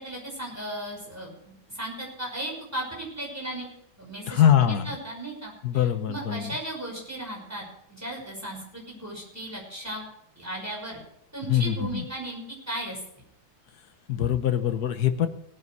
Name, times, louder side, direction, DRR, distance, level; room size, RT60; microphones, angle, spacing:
voice 1, 0.0-3.7 4.0-10.0 10.4-11.0 11.3-13.0, right 1 dB, 10° right, -2 dB, 5.7 m, -36 dB
voice 2, 4.3-4.9 5.6-6.6 11.5-12.0 14.1-15.3, left 10 dB, 60° left, 9 dB, 1.4 m, -23 dB
18.5 x 9.7 x 4.7 m, 0.71 s
omnidirectional pair, 2.1 m